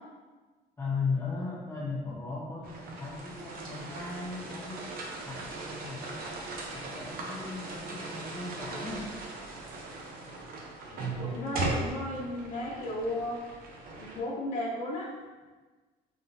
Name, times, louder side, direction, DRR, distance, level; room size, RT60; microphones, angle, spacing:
voice 1, 0.8-4.9 5.2-6.3 6.7-9.1, left 4 dB, 15° left, -8 dB, 0.7 m, -37 dB
sound 1, 2.6-14.2, right 3 dB, 60° right, 0.7 m, -38 dB
voice 2, 10.9-13.6 13.9-15.1, left 1 dB, 50° left, -5 dB, 1.3 m, -35 dB
4.0 x 3.6 x 2.7 m, 1.3 s
cardioid pair, 110°, 17 cm